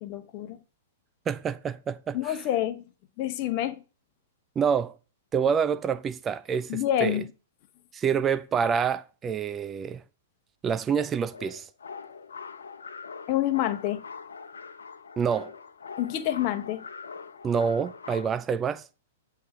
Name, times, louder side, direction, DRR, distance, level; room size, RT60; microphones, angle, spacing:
voice 1, 0.0-0.6 2.1-2.8 3.2-3.8 6.7-7.3 13.3-14.0 16.0-16.8, left 12 dB, 45° left, 0.9 m, -27 dB
voice 2, 1.3-2.4 4.6-4.9 5.3-7.2 7.9-10.0 10.6-11.7 15.2-15.5 17.4-18.8, right 7 dB, 20° right, 0.4 m, -27 dB
sound 1, 11.3-18.3, left 5 dB, 80° left, 0.8 m, -42 dB
7.8 x 3.4 x 6.0 m
hypercardioid pair, 110°, 0 cm